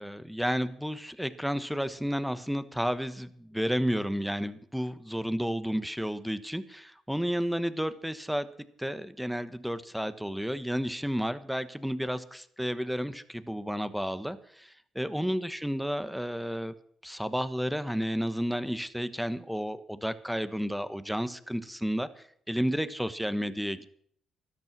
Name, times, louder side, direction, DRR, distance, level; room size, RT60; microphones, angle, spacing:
voice 1, 0.0-8.5 8.8-16.7 17.0-22.1 22.5-23.9, equal, ahead, 13 dB, 1.3 m, -32 dB
13.5 x 12.5 x 6.1 m, 0.62 s
cardioid pair, 90°, 0 cm